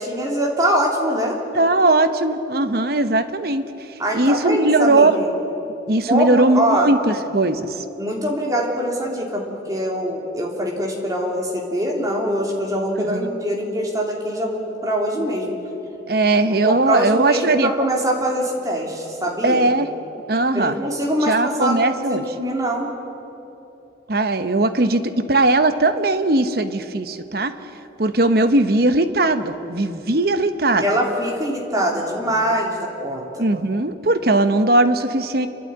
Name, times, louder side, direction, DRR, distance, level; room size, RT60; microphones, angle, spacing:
voice 1, 0.0-1.4 4.0-5.3 6.1-6.9 8.0-15.6 16.4-19.6 20.5-21.8 22.1-22.9 30.8-33.5, equal, 20° right, -1 dB, 3.3 m, -23 dB
voice 2, 1.5-3.6 4.1-5.2 5.9-7.8 13.1-13.3 16.1-17.7 19.4-19.9 20.3-20.8 21.3-22.2 24.1-27.5 28.0-30.8 33.4-35.5, right 2 dB, 55° right, 10 dB, 1.1 m, -19 dB
30.0 x 11.5 x 9.6 m, 3.0 s
head